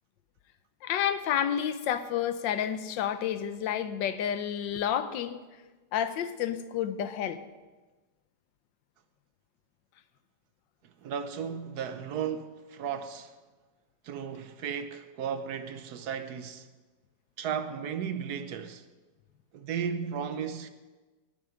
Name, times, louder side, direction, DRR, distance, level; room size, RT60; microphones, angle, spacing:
voice 1, 0.8-5.4 5.9-7.4, left 9 dB, 85° left, 1.5 m, -30 dB
voice 2, 10.8-13.3 14.0-16.7 17.4-18.8 19.5-20.7, right 7 dB, 70° right, 1.2 m, -35 dB
18.5 x 7.7 x 5.1 m
omnidirectional pair, 2.0 m